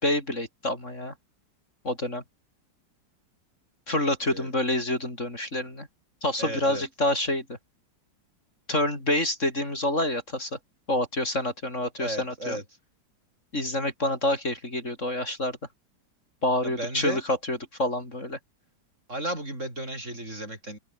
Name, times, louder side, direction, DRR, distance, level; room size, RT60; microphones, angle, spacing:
voice 1, 0.0-1.1 1.8-2.2 3.9-5.9 6.2-7.6 8.7-10.5 10.9-12.6 13.5-15.6 16.4-18.4, left 1 dB, 40° left, 6.7 m, -27 dB
voice 2, 6.4-6.8 12.0-12.6 16.6-17.2 19.1-20.8, right 1 dB, 40° right, 8.5 m, -34 dB
open air
omnidirectional pair, 2.0 m